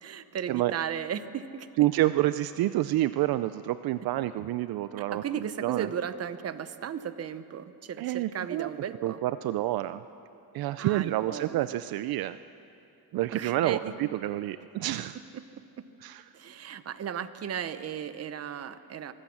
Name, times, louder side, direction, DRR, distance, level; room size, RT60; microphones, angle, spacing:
voice 1, 0.0-1.9 5.1-9.2 10.8-11.7 13.3-13.9 16.3-19.1, right 8 dB, 40° right, 12 dB, 0.9 m, -35 dB
voice 2, 1.8-5.9 8.0-8.7 9.0-10.0 10.5-12.4 13.1-15.2 16.0-16.2, right 15 dB, 70° right, 13 dB, 0.6 m, -28 dB
23.5 x 15.5 x 7.2 m, 2.7 s
cardioid pair, 125°, 38 cm